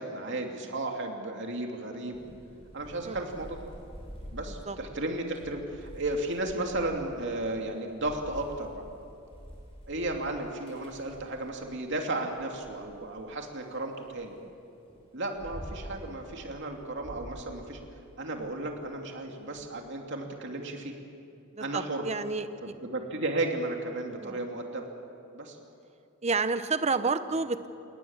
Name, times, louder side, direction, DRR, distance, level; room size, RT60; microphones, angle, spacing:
voice 1, 0.0-2.2 2.7-3.6 4.3-8.8 9.9-14.4 15.1-17.8 18.2-21.0 21.6-22.0 22.6-24.8 25.3-25.6, right 2 dB, 55° right, 2 dB, 2.9 m, -34 dB
Thunder / Rain, 2.1-11.8 12.3-14.3 14.9-19.7, equal, 25° left, 5.5 m, -47 dB
voice 2, 21.5-22.7 24.2-24.4 26.2-27.7, right 4 dB, 30° right, 11 dB, 0.9 m, -30 dB
29.5 x 18.5 x 7.4 m, 2.7 s
head